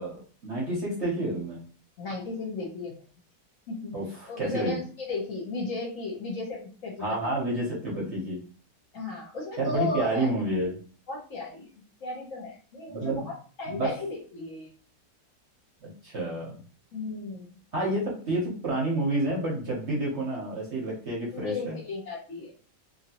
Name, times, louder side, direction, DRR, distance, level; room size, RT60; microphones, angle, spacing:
voice 1, 0.0-1.6 3.9-4.8 7.0-8.4 9.6-10.7 12.9-13.3 13.7-13.9 15.8-16.6 17.7-18.0 18.3-21.8, right 1 dB, 50° right, -4 dB, 1.0 m, -29 dB
voice 2, 2.0-2.9 3.7-3.9 4.3-7.2 8.9-10.3 11.1-11.7 12.0-13.3 13.6-14.7 16.9-17.5 21.3-22.5, left 3 dB, 55° left, -2 dB, 1.1 m, -35 dB
2.8 x 2.8 x 2.8 m, 0.40 s
omnidirectional pair, 1.9 m